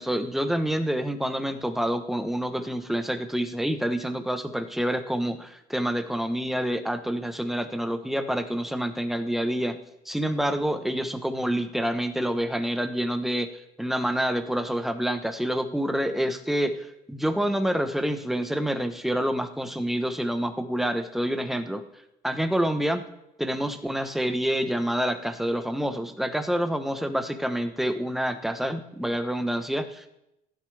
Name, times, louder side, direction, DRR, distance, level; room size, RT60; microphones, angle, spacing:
voice 1, 0.0-9.8 10.0-13.5 13.8-21.8 22.2-23.1 23.4-30.1, equal, ahead, 7 dB, 1.1 m, -27 dB
15.5 x 11.5 x 3.5 m, 0.84 s
cardioid pair, 110°, 17 cm